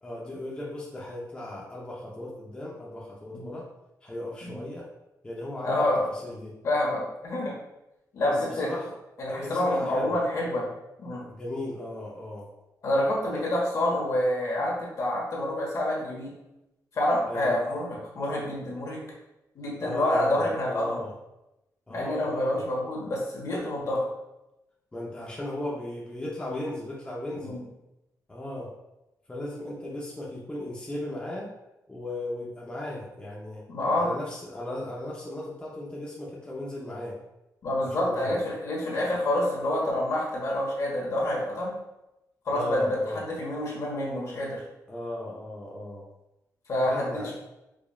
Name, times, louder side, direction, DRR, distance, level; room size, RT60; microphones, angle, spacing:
voice 1, 0.0-3.7 4.0-4.9 5.2-5.7 6.1-6.6 8.2-8.9 9.3-10.2 11.3-12.5 13.3-13.5 17.3-17.6 19.8-21.1 21.9-22.6 24.9-27.6 28.3-28.7 29.3-31.5 31.9-33.6 33.9-37.2 37.8-38.4 42.5-43.2 44.9-46.1 46.8-47.3, left 1 dB, 15° left, -4 dB, 0.7 m, -36 dB
voice 2, 5.6-6.0 6.6-7.5 8.1-8.7 9.2-10.7 11.0-11.2 12.8-16.3 16.9-19.0 19.5-21.0 21.9-24.1 27.3-27.6 33.7-34.1 37.6-41.7 42.5-43.0 43.3-44.6 46.7-47.3, left 1 dB, 55° left, -3 dB, 1.2 m, -27 dB
5.0 x 2.5 x 2.3 m, 0.93 s
cardioid pair, 105°, 6 cm